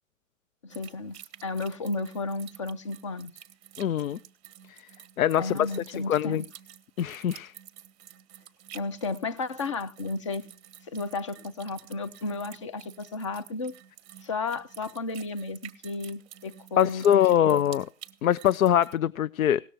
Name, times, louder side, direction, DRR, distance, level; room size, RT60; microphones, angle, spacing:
voice 1, 0.6-3.3 5.4-6.5 8.7-10.4 10.9-13.7 14.2-17.0 17.3-17.6, left 3 dB, 25° left, 0.4 m, -33 dB
sound 1, 0.7-19.0, right 11 dB, 15° right, 0.8 m, -51 dB
voice 2, 3.8-4.2 4.7-4.8 5.2-6.4 7.0-7.5 16.8-17.9 18.2-19.6, left 10 dB, 80° left, 0.5 m, -23 dB
17.5 x 6.4 x 4.6 m
hypercardioid pair, 150°, 41 cm